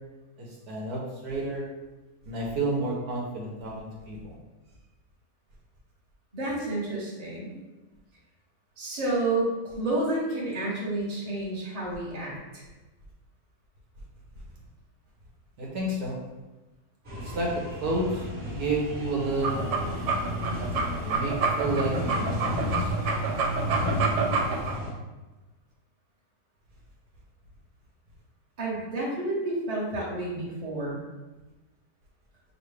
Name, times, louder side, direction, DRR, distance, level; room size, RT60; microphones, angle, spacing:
voice 1, 0.4-1.7 2.3-4.3 15.6-16.2 17.2-19.8 21.0-22.5 22.8-22.9, right 2 dB, 70° right, -3 dB, 1.4 m, -30 dB
voice 2, 6.3-7.5 8.8-12.6 28.6-31.0, right 2 dB, 25° right, -6 dB, 1.2 m, -30 dB
sound 1, 17.0-24.9, left 1 dB, 45° right, 1.6 m, -32 dB
sound 2, 19.3-24.7, right 4 dB, 90° right, 1.3 m, -28 dB
6.6 x 2.5 x 3.3 m, 1.1 s
omnidirectional pair, 1.7 m